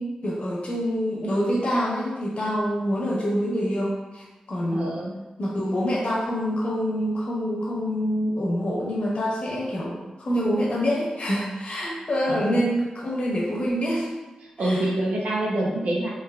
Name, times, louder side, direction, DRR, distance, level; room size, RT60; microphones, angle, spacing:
voice 1, 0.0-5.0 5.4-14.1 14.6-14.8, equal, 55° left, -4 dB, 1.0 m, -26 dB
voice 2, 4.7-5.1 12.3-12.6 14.4-16.1, right 1 dB, 75° right, -4 dB, 0.7 m, -26 dB
3.2 x 3.2 x 2.3 m, 1.1 s
wide cardioid pair, 85°, 2 cm